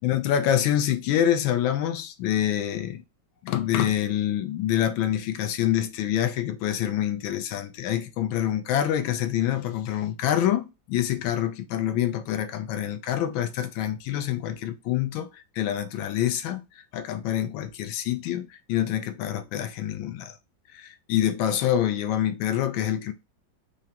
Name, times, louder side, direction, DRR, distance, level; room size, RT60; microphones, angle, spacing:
voice 1, 0.0-3.0 3.4-16.6 16.9-20.3 20.7-23.1, left 11 dB, 85° left, 1.4 m, -26 dB
4.7 x 2.1 x 2.8 m
omnidirectional pair, 2.1 m